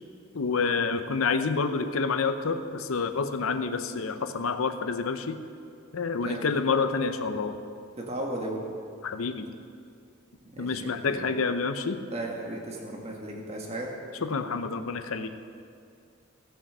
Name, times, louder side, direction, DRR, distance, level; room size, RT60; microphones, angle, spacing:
voice 1, 0.3-5.4 5.9-7.6 9.0-9.5 10.6-12.0 14.2-15.3, left 4 dB, 85° left, 9 dB, 0.7 m, -28 dB
voice 2, 6.2-6.5 8.0-8.6 10.5-11.2 12.1-13.9, right 1 dB, 30° right, -1 dB, 1.5 m, -35 dB
16.0 x 6.3 x 6.7 m, 2.4 s
head